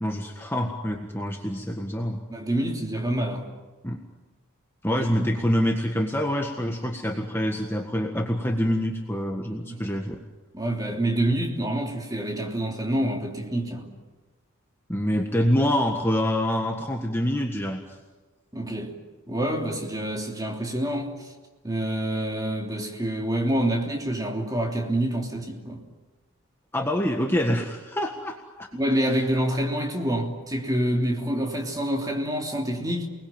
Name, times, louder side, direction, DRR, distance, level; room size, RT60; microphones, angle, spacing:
voice 1, 0.0-2.2 3.8-4.0 4.8-10.2 14.9-17.8 26.7-28.7, equal, 10° left, 1.6 m, -26 dB
voice 2, 2.3-3.5 4.9-5.3 9.7-9.9 10.5-13.9 18.5-19.0 19.3-21.3 21.6-25.8 28.7-33.1, right 1 dB, 15° right, 3.2 m, -27 dB
29.5 x 21.0 x 9.0 m
head